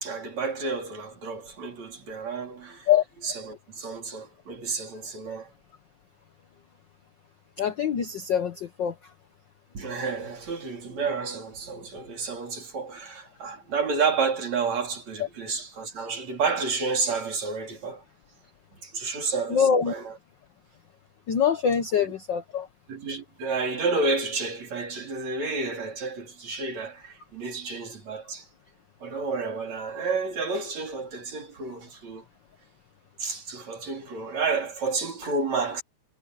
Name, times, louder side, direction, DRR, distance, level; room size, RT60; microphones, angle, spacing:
voice 1, 0.0-2.9 3.2-5.5 9.7-18.0 18.8-20.1 21.9-22.1 22.9-28.5 29.0-32.2 33.2-35.8, right 4 dB, 65° right, 5.2 m, -30 dB
voice 2, 7.6-8.9 19.5-19.9 21.3-22.7, left 8 dB, 70° left, 1.1 m, -24 dB
omnidirectional pair, 3.4 m